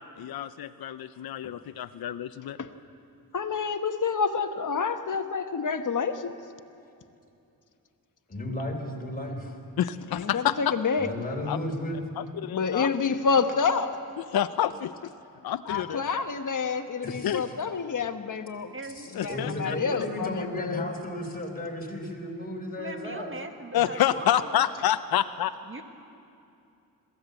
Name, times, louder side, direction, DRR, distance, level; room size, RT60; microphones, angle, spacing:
voice 1, 0.0-2.6 9.8-10.7 11.5-11.6 12.2-12.9 14.2-15.1 15.4-16.1 17.2-17.4 19.1-19.8 23.7-25.5, left 11 dB, 70° left, 11 dB, 0.6 m, -28 dB
voice 2, 3.3-6.3 10.1-11.1 12.5-14.0 15.7-18.7 19.2-20.9, left 5 dB, 55° left, 8 dB, 1.2 m, -28 dB
voice 3, 8.3-9.6 11.0-12.0 15.7-15.8 17.0-17.5 18.9-23.3, left 1 dB, 25° left, 0 dB, 3.9 m, -34 dB
voice 4, 18.7-19.8 22.8-24.7 25.6-25.8, right 2 dB, 35° right, 6 dB, 1.7 m, -40 dB
22.0 x 15.5 x 8.0 m, 2.6 s
cardioid pair, 85°, 37 cm